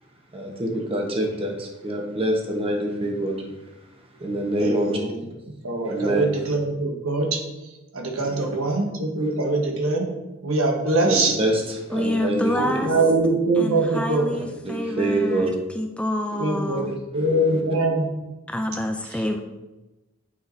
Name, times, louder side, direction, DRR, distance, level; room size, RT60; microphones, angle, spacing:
voice 1, 0.3-3.5 4.2-5.0 5.8-6.2 8.1-8.5 9.2-9.3 11.0-12.5 14.3-15.5 17.1-17.6, right 1 dB, 25° right, 0 dB, 1.1 m, -26 dB
voice 2, 4.6-5.1 5.6-7.4 7.9-10.1 10.4-11.4 12.6-14.3 16.4-18.1, right 2 dB, 85° right, 1 dB, 1.2 m, -23 dB
voice 3, 11.9-12.9 13.6-15.5 15.7-16.9 18.5-19.4, left 1 dB, 5° left, 4 dB, 0.3 m, -27 dB
8.5 x 5.0 x 2.7 m, 1.1 s
head